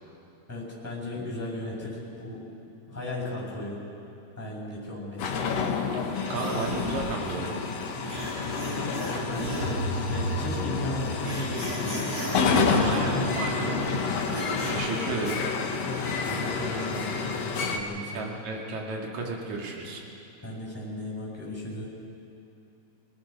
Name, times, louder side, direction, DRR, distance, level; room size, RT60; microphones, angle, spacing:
voice 1, 0.5-2.5 2.9-3.8 4.4-5.3 9.0-9.8 10.1-12.7 13.1-13.2 13.4-13.8 16.3-18.3 20.4-21.9, left 1 dB, 5° left, -4 dB, 7.0 m, -36 dB
sound 1, 5.2-17.8, left 4 dB, 65° left, 2.3 m, -29 dB
sound 2, 6.3-14.7, right 1 dB, 30° right, 6.2 m, -34 dB
voice 2, 6.3-7.6 12.8-14.0 14.7-15.4 18.1-20.0, right 3 dB, 75° right, -1 dB, 3.5 m, -33 dB
27.5 x 19.0 x 5.5 m, 2.8 s
omnidirectional pair, 3.4 m